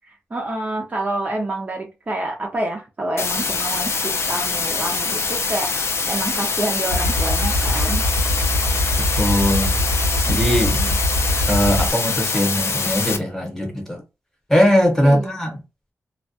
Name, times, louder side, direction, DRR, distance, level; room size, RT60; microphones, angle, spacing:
voice 1, 0.1-5.8 6.1-8.0 10.3-11.0 15.0-15.4, right 2 dB, 30° right, 0.4 m, -28 dB
sound 1, 3.2-13.2, left 4 dB, 55° left, 0.4 m, -24 dB
sound 2, 6.9-11.9, left 1 dB, 75° left, 0.9 m, -22 dB
voice 2, 9.2-9.8 10.3-10.8 11.5-14.0 14.5-15.6, equal, 10° left, 0.9 m, -20 dB
2.2 x 2.1 x 2.7 m
wide cardioid pair, 140°, 5 cm